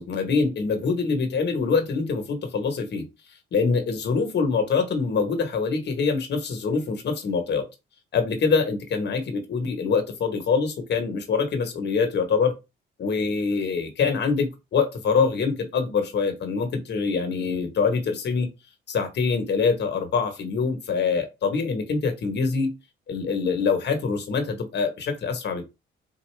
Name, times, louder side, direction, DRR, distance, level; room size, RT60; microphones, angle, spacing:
voice 1, 0.0-3.0 3.5-7.6 8.1-12.5 13.0-18.5 18.9-22.7 23.1-25.7, left 5 dB, 60° left, 1.2 m, -24 dB
3.9 x 2.6 x 3.3 m
cardioid pair, 90°, 20 cm